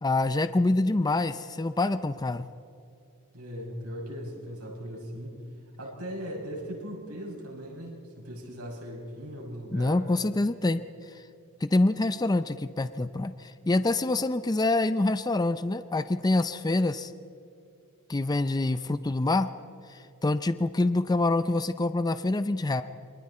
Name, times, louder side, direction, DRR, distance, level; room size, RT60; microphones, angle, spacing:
voice 1, 0.0-2.4 9.7-11.2 11.6-17.1 18.1-19.5 19.9-22.8, left 2 dB, 20° left, 11 dB, 0.4 m, -26 dB
voice 2, 3.3-5.5 5.8-10.0, equal, 85° right, -2 dB, 7.0 m, -39 dB
28.0 x 24.5 x 4.3 m, 2.5 s
head